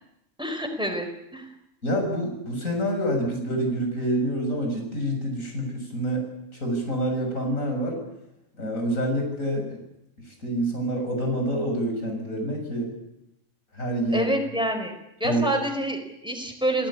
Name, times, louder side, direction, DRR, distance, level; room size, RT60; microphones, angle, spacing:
voice 1, 0.4-1.5 14.1-14.9 15.2-16.9, right 1 dB, 5° right, 5 dB, 4.4 m, -27 dB
voice 2, 1.8-6.3 6.6-8.0 8.6-9.8 10.4-12.9 13.7-14.3 15.2-15.5, right 1 dB, 80° left, 3 dB, 7.1 m, -27 dB
28.0 x 17.5 x 8.7 m, 0.85 s
omnidirectional pair, 1.4 m